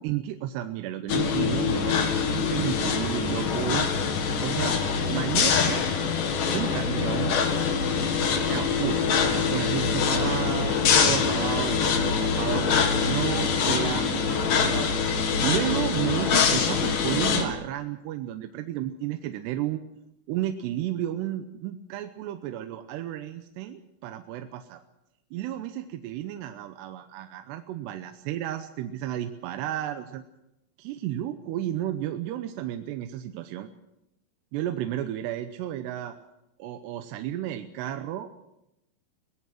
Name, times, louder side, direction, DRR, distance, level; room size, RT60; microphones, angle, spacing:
voice 1, 0.0-3.9 4.4-4.8 5.1-6.0 6.5-7.4 8.5-14.9 15.4-19.8 20.3-24.8 25.3-30.2 30.8-33.7 34.5-36.2 36.6-38.3, right 12 dB, 85° right, 7 dB, 3.0 m, -32 dB
sound 1, 1.1-17.5, left 6 dB, 55° left, 3.3 m, -24 dB
23.0 x 19.0 x 6.0 m, 0.87 s
omnidirectional pair, 4.8 m